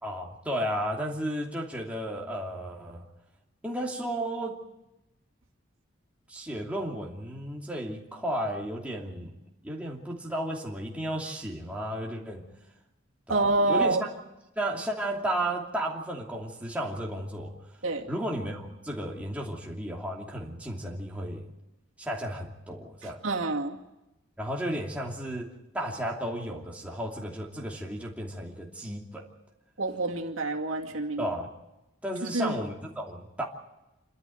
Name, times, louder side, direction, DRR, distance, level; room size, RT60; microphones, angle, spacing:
voice 1, 0.0-3.1 3.6-4.6 6.3-9.3 9.6-12.5 13.3-14.1 14.5-17.5 18.1-21.4 22.0-23.2 24.4-29.3 31.2-31.5 32.0-33.5, right 1 dB, 5° right, -2 dB, 2.8 m, -33 dB
voice 2, 13.3-14.0 17.8-18.1 23.0-23.8 29.8-31.3 32.3-32.6, right 2 dB, 80° right, 1 dB, 2.3 m, -27 dB
27.5 x 13.0 x 9.2 m, 0.96 s
head